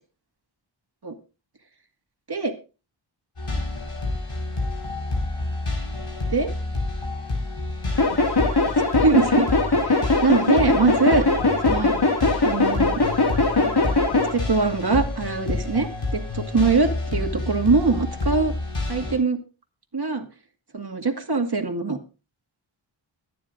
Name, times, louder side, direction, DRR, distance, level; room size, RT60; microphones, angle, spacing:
sound 1, 3.4-19.2, left 2 dB, 80° left, 5.3 m, -29 dB
sound 2, 8.0-14.3, left 3 dB, 50° left, 2.3 m, -21 dB
voice 1, 9.0-9.5 9.9-11.2 11.6-11.9 12.4-13.0 14.3-18.5 18.9-19.4 19.9-20.2 20.7-22.0, right 3 dB, 50° right, 6 dB, 2.1 m, -22 dB
22.5 x 10.0 x 2.6 m, 0.33 s
wide cardioid pair, 55°, 50 cm